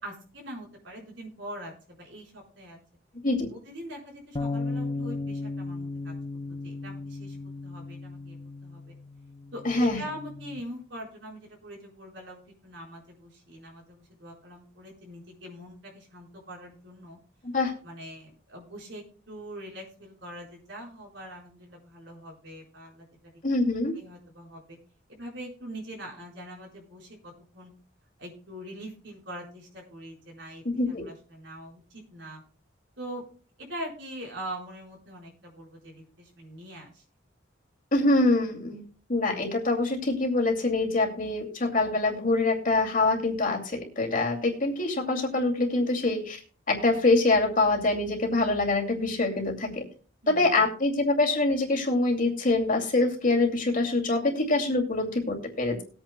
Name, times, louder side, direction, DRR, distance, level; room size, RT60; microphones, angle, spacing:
voice 1, 0.0-2.8 3.5-6.1 6.6-7.4 7.6-8.4 8.6-8.9 9.5-17.2 17.8-23.1 23.9-24.8 25.1-27.7 28.2-32.4 33.0-33.2 33.6-37.0 50.2-50.6, equal, 65° right, -1 dB, 4.5 m, -43 dB
sound 1, 4.4-10.6, left 3 dB, 25° left, 0.6 m, -36 dB
voice 2, 9.6-10.0 17.4-17.7 23.4-23.9 30.8-31.0 37.9-38.8 39.1-46.4 46.7-49.9 50.3-55.8, left 2 dB, 45° left, 1 dB, 2.5 m, -25 dB
20.5 x 8.7 x 2.2 m, 0.40 s
head